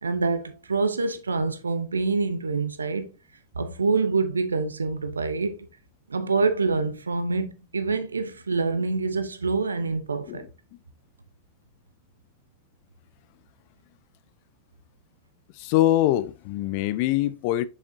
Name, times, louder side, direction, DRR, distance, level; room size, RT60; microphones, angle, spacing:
voice 1, 0.0-3.1 3.6-5.6 6.1-10.4, right 4 dB, 75° right, 0.7 m, -26 dB
voice 2, 15.6-17.7, left 14 dB, 45° left, 0.4 m, -23 dB
7.1 x 6.3 x 2.7 m
figure-of-eight pair, 90°, 0 cm